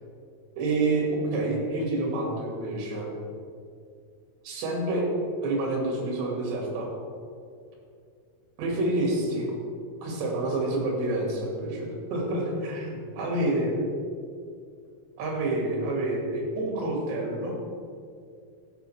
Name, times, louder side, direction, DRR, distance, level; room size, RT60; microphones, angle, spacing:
voice 1, 0.6-3.1 4.4-5.1 5.4-6.9 8.6-9.5 10.0-13.7 15.2-17.5, right 2 dB, 75° right, -2 dB, 4.2 m, -28 dB
14.0 x 8.0 x 3.3 m, 2.3 s
omnidirectional pair, 5.0 m